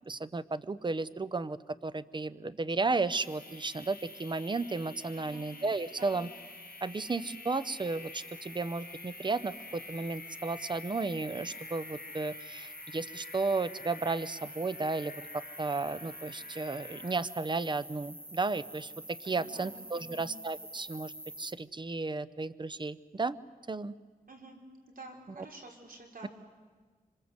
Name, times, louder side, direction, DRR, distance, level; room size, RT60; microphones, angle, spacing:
voice 1, 0.1-6.3 6.8-18.9 19.2-21.1 21.4-23.4 23.7-24.0, right 3 dB, 30° right, 14 dB, 0.8 m, -34 dB
sound 1, 2.9-17.2, left 5 dB, 85° left, 3.3 m, -50 dB
sound 2, 3.1-21.5, right 1 dB, 15° right, 1.7 m, -48 dB
voice 2, 5.1-5.5 5.9-6.2 19.2-20.3 24.3-24.6 24.9-26.3, right 2 dB, 65° right, 1 dB, 4.9 m, -49 dB
26.5 x 25.5 x 8.1 m, 1.4 s
wide cardioid pair, 100°, 16 cm